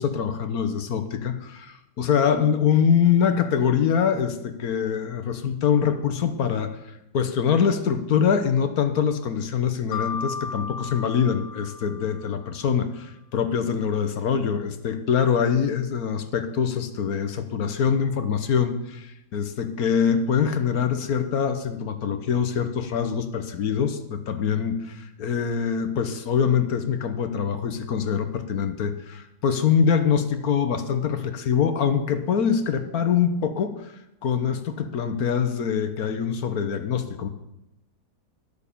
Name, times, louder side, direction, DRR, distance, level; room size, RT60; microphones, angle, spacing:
voice 1, 0.0-6.8 7.1-33.9 34.2-37.3, left 7 dB, 60° left, 9 dB, 1.4 m, -24 dB
Mallet percussion, 9.9-12.7, left 5 dB, 80° left, 1.6 m, -35 dB
11.5 x 6.8 x 8.4 m, 0.87 s
omnidirectional pair, 1.8 m